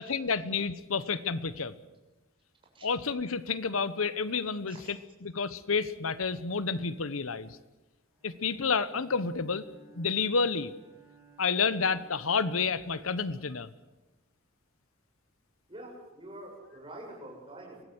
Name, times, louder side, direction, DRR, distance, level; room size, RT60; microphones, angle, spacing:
voice 1, 0.0-1.7 2.8-7.6 8.2-9.6 9.9-10.7 11.4-13.7, left 5 dB, 90° left, 15 dB, 1.0 m, -30 dB
Bowed string instrument, 8.1-13.4, right 2 dB, 10° right, 5.6 m, -58 dB
voice 2, 15.7-17.8, right 1 dB, 25° right, -1 dB, 6.9 m, -46 dB
24.0 x 17.5 x 8.1 m, 1.1 s
head